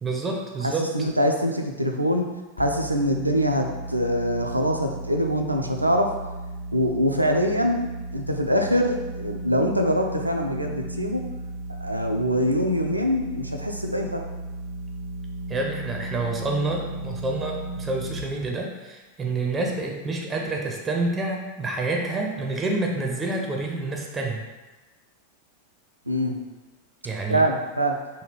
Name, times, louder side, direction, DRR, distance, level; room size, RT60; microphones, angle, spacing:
voice 1, 0.0-0.9 15.5-24.4 27.0-27.4, right 2 dB, 15° right, 0 dB, 0.4 m, -28 dB
voice 2, 0.6-6.1 6.7-7.9 8.1-11.2 11.7-14.2 26.1-26.4 27.3-28.0, equal, 85° right, 3 dB, 0.3 m, -24 dB
sound 1, 2.6-18.2, right 2 dB, 65° left, 0.5 m, -35 dB
3.3 x 2.3 x 3.1 m, 1.2 s
figure-of-eight pair, 90°, 0 cm